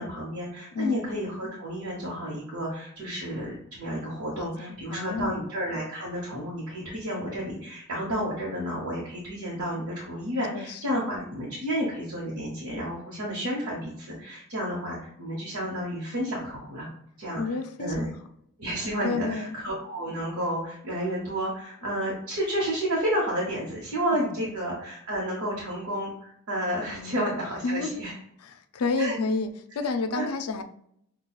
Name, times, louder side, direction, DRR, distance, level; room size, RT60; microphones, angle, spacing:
voice 1, 0.0-16.9 17.2-17.4 17.8-18.1 18.6-28.1 29.0-29.1 30.1-30.3, equal, 85° right, -5 dB, 1.0 m, -31 dB
voice 2, 0.7-1.0 4.4-5.4 10.5-11.0 17.4-18.1 19.0-19.6 24.1-24.2 26.9-27.2 27.6-28.0 28.4-30.6, left 3 dB, 80° left, 8 dB, 0.4 m, -31 dB
6.0 x 2.3 x 2.3 m, 0.70 s
head